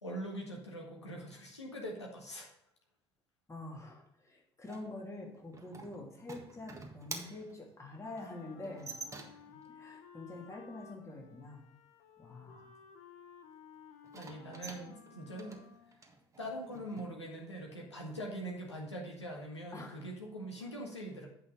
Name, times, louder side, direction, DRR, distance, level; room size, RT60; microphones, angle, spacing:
voice 1, 0.0-2.5 14.1-15.6 16.4-21.3, right 1 dB, 90° left, -1 dB, 1.6 m, -43 dB
voice 2, 3.5-9.0 9.5-11.6 12.2-12.8 19.7-20.1, left 2 dB, 20° left, -1 dB, 2.9 m, -46 dB
sound 1, 4.7-9.6 14.0-17.1, right 4 dB, 20° right, 1.5 m, -48 dB
Wind instrument woodwind instrument, 8.0-16.1, left 7 dB, 55° left, 1.0 m, -56 dB
8.4 x 5.6 x 5.5 m, 0.75 s
figure-of-eight pair, 60°, 14 cm